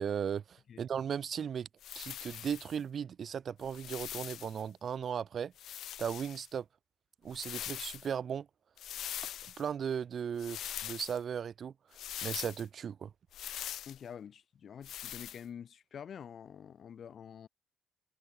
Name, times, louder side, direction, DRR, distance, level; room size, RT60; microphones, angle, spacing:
voice 1, 0.0-1.7 1.9-5.5 6.0-6.6 7.2-8.5 9.6-11.7 12.2-13.1, right 7 dB, 55° right, 1.5 m, -36 dB
sound 1, 1.8-2.8 3.6-4.6 5.6-6.5 7.3-8.1 8.8-9.6 10.4-11.2 11.9-12.6 13.3-14.0 14.8-15.4, left 11 dB, 75° left, 0.9 m, -42 dB
voice 2, 13.9-17.5, left 8 dB, 55° left, 2.1 m, -47 dB
cardioid pair, 90°, 0 cm